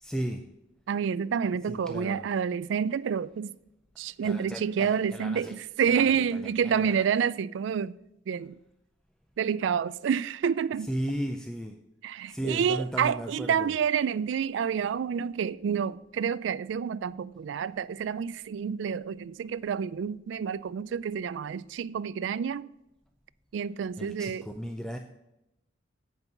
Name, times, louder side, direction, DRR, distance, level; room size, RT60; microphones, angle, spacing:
voice 1, 0.0-0.4 1.7-2.2 4.2-5.5 5.9-6.0 6.3-7.0 10.9-11.8 12.3-13.7 24.0-25.0, right 1 dB, 5° left, 0.4 m, -35 dB
voice 2, 0.9-3.5 4.0-8.0 8.3-8.6 9.4-10.9 12.0-22.7 23.5-24.5, right 7 dB, 70° right, 0.3 m, -28 dB
8.2 x 5.4 x 6.7 m
head